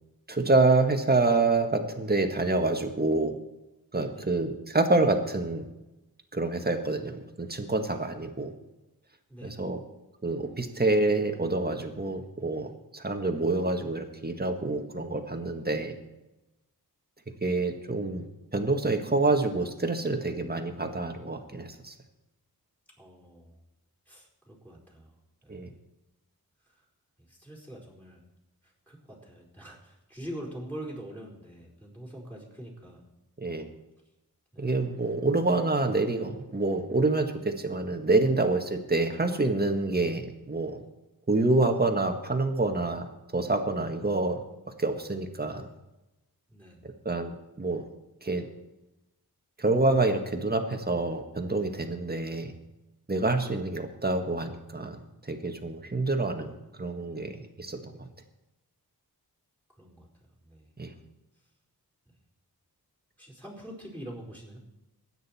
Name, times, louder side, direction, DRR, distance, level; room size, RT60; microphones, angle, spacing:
voice 1, 0.3-3.4 3.9-5.6 6.3-8.5 9.4-9.8 10.2-16.0 17.4-18.2 18.5-21.9 25.5-25.7 33.4-33.7 34.6-40.8 41.3-43.1 43.3-44.4 44.8-45.7 47.1-47.9 48.2-48.5 49.6-52.5 53.1-58.1 60.8-60.9, right 2 dB, 25° right, 5 dB, 1.7 m, -27 dB
voice 2, 4.0-4.4 9.3-9.7 23.0-23.6 24.1-25.1 25.4-25.7 26.7-26.8 27.3-28.2 28.6-33.0 34.5-34.7 46.5-46.9 59.8-60.1 60.4-60.7 63.2-64.6, right 1 dB, 5° left, -4 dB, 4.3 m, -44 dB
22.0 x 9.3 x 4.4 m, 0.99 s
wide cardioid pair, 95°, 38 cm